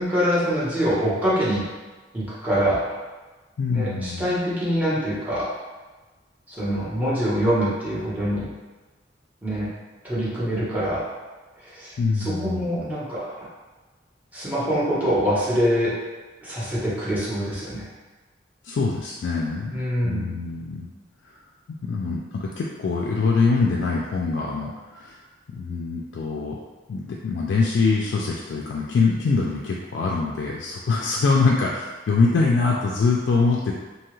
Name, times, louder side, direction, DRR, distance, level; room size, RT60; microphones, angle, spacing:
voice 1, 0.0-1.6 2.1-2.8 3.7-5.4 6.5-8.5 9.4-9.7 10.0-11.0 11.7-11.9 12.2-13.5 14.3-15.9 16.4-17.8 19.7-20.2, equal, 10° right, -10 dB, 0.9 m, -24 dB
voice 2, 3.6-4.3 12.0-12.8 18.6-19.7 20.0-20.9 21.2-21.4 21.8-25.2 25.5-26.6 26.9-33.7, left 4 dB, 75° left, -3 dB, 0.3 m, -24 dB
2.8 x 2.3 x 3.0 m, 1.3 s
head